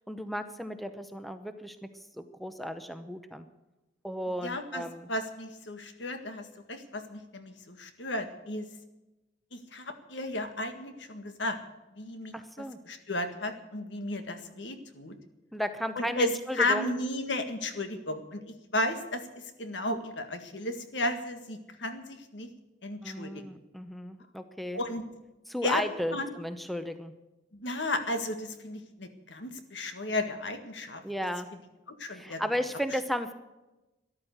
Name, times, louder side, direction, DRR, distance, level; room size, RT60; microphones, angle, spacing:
voice 1, 0.1-1.8 2.2-3.5 4.0-5.1 12.3-12.8 15.5-16.9 23.0-24.8 25.5-27.1 31.0-31.5 32.1-33.3, equal, ahead, 9 dB, 0.8 m, -34 dB
voice 2, 4.4-4.8 5.1-8.7 9.5-11.6 11.9-15.1 15.9-19.3 19.6-22.5 22.8-23.4 24.7-25.0 25.6-25.8 26.1-26.4 27.5-31.0 31.9-32.4, left 2 dB, 75° left, 8 dB, 1.8 m, -34 dB
13.5 x 11.5 x 8.0 m, 1.0 s
head